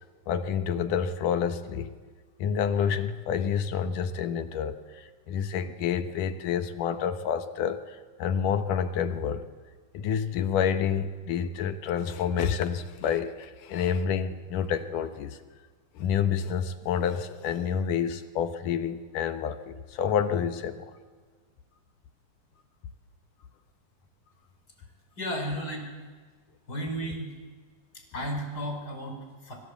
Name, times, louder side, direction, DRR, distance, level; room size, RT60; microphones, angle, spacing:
voice 1, 0.3-1.9 2.4-9.5 9.9-15.4 16.0-20.9, left 7 dB, 75° left, 9 dB, 2.7 m, -28 dB
voice 2, 25.1-25.9 26.7-27.3 27.9-29.6, equal, 25° left, 3 dB, 5.8 m, -34 dB
25.0 x 25.0 x 8.3 m, 1.5 s
omnidirectional pair, 3.8 m